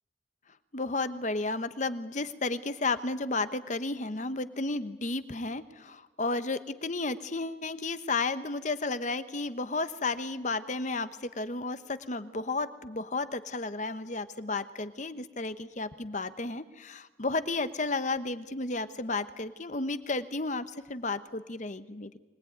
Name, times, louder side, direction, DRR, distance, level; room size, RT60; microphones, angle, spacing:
voice 1, 0.7-22.2, left 3 dB, 40° left, 12 dB, 1.0 m, -33 dB
24.0 x 19.5 x 9.4 m, 1.2 s
head